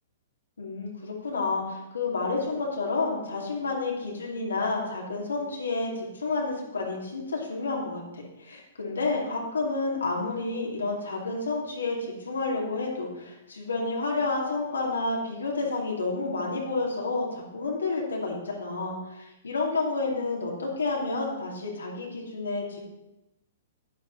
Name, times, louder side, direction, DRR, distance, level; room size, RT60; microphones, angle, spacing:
voice 1, 0.6-22.8, left 3 dB, 85° left, -2 dB, 2.4 m, -30 dB
9.3 x 8.1 x 4.0 m, 0.92 s
hypercardioid pair, 125°, 0 cm